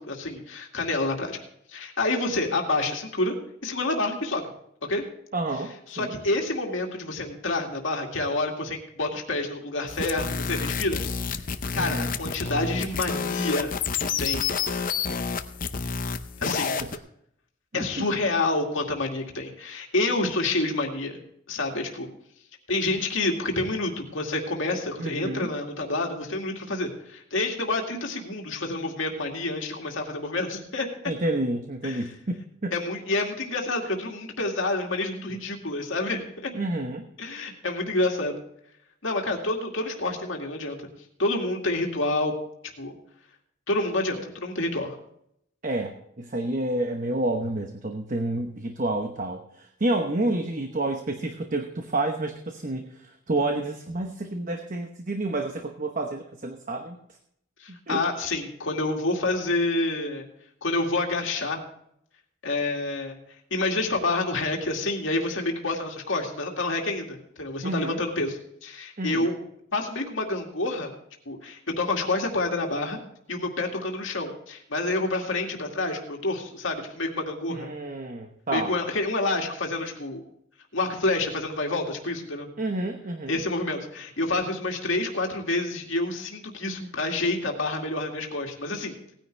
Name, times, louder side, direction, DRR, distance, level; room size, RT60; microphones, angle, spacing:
voice 1, 0.0-1.4 1.7-3.4 3.6-4.5 4.9-5.0 5.9-11.0 11.7-13.7 14.0-14.5 16.4-16.8 17.7-21.2 21.5-22.1 22.7-30.9 31.8-32.1 32.7-36.5 37.2-38.4 39.0-40.8 41.2-42.3 42.8-43.0 43.7-44.9 57.6-60.3 60.6-61.6 62.4-63.2 63.5-69.4 69.7-70.9 71.3-73.0 73.3-77.7 78.5-80.2 80.7-82.5 83.3-88.9, left 2 dB, 65° left, 1 dB, 2.2 m, -28 dB
voice 2, 5.3-6.1 11.7-12.1 16.8-16.9 17.7-18.1 25.0-25.5 31.0-32.7 36.5-37.1 45.6-57.0 57.7-58.1 67.6-68.0 69.0-69.3 77.5-78.7 82.6-83.4, right 2 dB, 40° right, 4 dB, 1.0 m, -29 dB
sound 1, 9.9-17.0, left 5 dB, 40° left, 0.7 m, -29 dB
18.0 x 10.0 x 3.3 m, 0.72 s
head